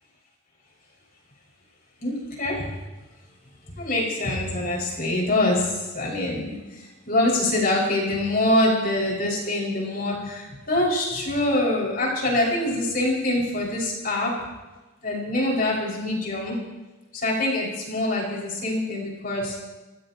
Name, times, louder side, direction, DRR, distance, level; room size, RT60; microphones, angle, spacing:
voice 1, 2.0-2.8 3.7-14.3 15.0-16.6 17.1-19.6, left 1 dB, 45° left, -3 dB, 6.2 m, -25 dB
27.0 x 16.0 x 3.1 m, 1.1 s
head